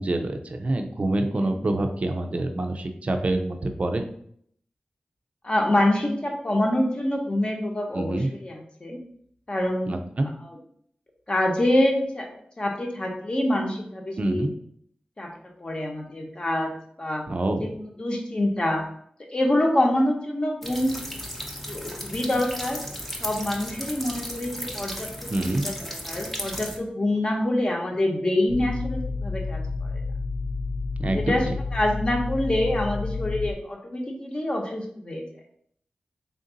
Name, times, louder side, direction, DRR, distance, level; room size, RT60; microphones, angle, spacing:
voice 1, 0.0-4.1 7.9-8.3 9.9-10.3 14.2-14.5 17.3-17.7 25.3-25.6 31.0-31.6, right 2 dB, 50° right, 5 dB, 0.5 m, -26 dB
voice 2, 5.4-9.0 9.5-9.9 10.4-10.6 11.3-14.5 15.2-15.3 15.6-16.7 17.0-17.2 17.6-18.8 19.3-21.0 21.6-22.8 23.2-30.0 31.1-31.4 31.7-35.2, left 1 dB, 35° left, 0 dB, 0.9 m, -26 dB
sound 1, 20.6-26.8, equal, 5° left, 0.6 m, -35 dB
sound 2, 28.5-33.5, left 3 dB, 85° left, 0.3 m, -30 dB
3.6 x 2.6 x 3.8 m, 0.66 s
wide cardioid pair, 100°, 3 cm